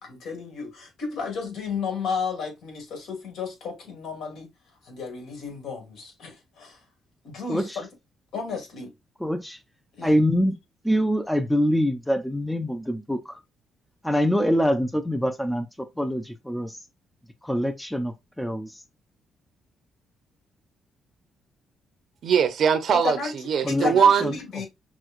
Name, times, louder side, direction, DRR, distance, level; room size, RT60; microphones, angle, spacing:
voice 1, 0.0-4.5 4.8-6.8 7.2-7.9 8.3-8.9 9.9-10.2 22.9-23.3 23.7-24.7, left 5 dB, 75° left, 2.0 m, -33 dB
voice 2, 9.2-9.6 10.0-10.6 10.8-13.4 14.0-16.8 17.4-18.8 23.6-23.9 24.2-24.4, equal, 5° left, 0.5 m, -25 dB
voice 3, 22.2-24.3, right 7 dB, 60° right, 0.8 m, -21 dB
6.1 x 2.3 x 2.5 m
cardioid pair, 90°, 0 cm